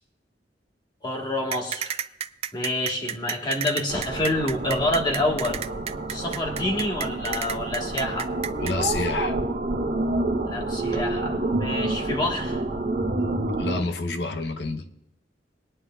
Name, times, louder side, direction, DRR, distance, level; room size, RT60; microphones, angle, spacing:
voice 1, 1.0-2.0 2.5-5.6 6.1-8.3 10.5-12.6, left 1 dB, 25° left, 0 dB, 1.6 m, -27 dB
sound 1, 1.5-8.7, right 9 dB, 35° right, 0.3 m, -31 dB
sound 2, 3.9-13.8, right 2 dB, 60° right, 1.3 m, -28 dB
voice 2, 8.6-9.4 13.6-14.9, left 3 dB, 70° left, 7 dB, 0.9 m, -28 dB
22.0 x 9.7 x 2.4 m, 0.85 s
head